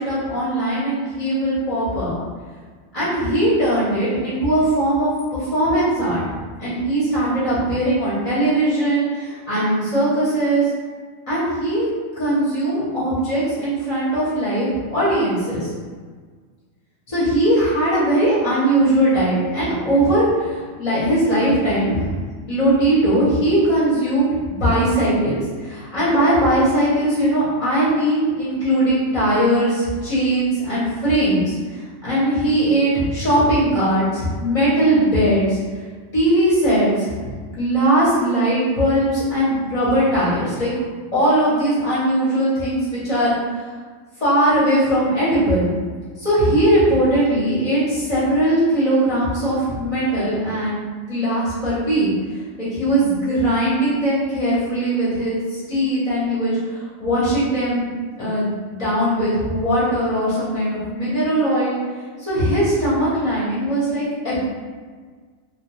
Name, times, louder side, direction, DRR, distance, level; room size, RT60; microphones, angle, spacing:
voice 1, 0.0-2.1 2.9-6.2 6.6-10.7 11.3-11.9 12.2-15.7 17.1-22.1 22.5-35.6 36.1-40.7 41.1-43.7 44.2-45.7 46.2-50.8 51.1-57.9 58.2-61.8 62.2-64.4, right 1 dB, 35° left, -10 dB, 0.8 m, -20 dB
2.3 x 2.2 x 3.0 m, 1.5 s
omnidirectional pair, 1.4 m